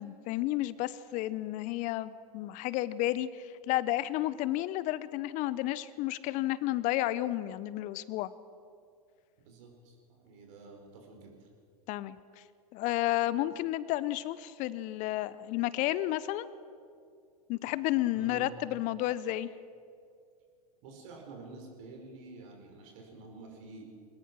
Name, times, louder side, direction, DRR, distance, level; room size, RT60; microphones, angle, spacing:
voice 1, 0.0-8.3 11.9-12.2 12.7-16.5 17.5-19.5, left 15 dB, 40° left, 17 dB, 0.8 m, -31 dB
voice 2, 9.4-11.5 18.1-18.6 20.8-23.9, right 3 dB, 55° right, 2 dB, 4.9 m, -49 dB
22.0 x 19.0 x 6.2 m, 2.3 s
hypercardioid pair, 100°, 19 cm